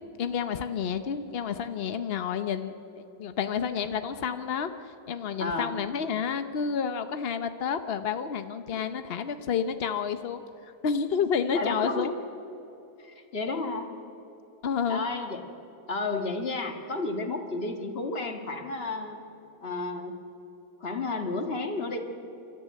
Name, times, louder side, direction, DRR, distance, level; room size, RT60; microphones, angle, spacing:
voice 1, 0.2-2.7 3.2-10.4 10.8-12.1 13.5-13.6 14.6-15.1, left 6 dB, 65° left, 9 dB, 0.5 m, -30 dB
voice 2, 5.4-5.7 8.7-8.8 11.5-12.1 13.0-13.9 14.9-15.4 15.9-19.2 19.6-20.2 20.8-22.0, left 3 dB, 35° left, 5 dB, 1.8 m, -32 dB
29.0 x 13.0 x 9.4 m, 3.0 s
omnidirectional pair, 2.1 m